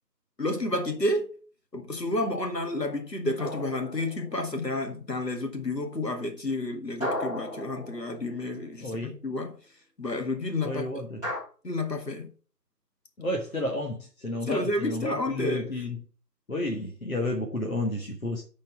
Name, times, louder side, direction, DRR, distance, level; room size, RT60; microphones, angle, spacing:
voice 1, 0.4-1.3 1.7-9.6 10.0-11.1 11.6-12.3 14.4-15.7, left 2 dB, 85° left, 2.1 m, -30 dB
sound 1, 3.4-4.6 7.0-8.7 11.2-11.4, equal, 10° left, 2.4 m, -35 dB
voice 2, 8.8-9.1 10.6-11.2 13.2-14.0 14.2-16.0 16.5-18.4, left 1 dB, 60° left, 1.5 m, -31 dB
7.2 x 4.3 x 5.9 m
figure-of-eight pair, 170°, 49 cm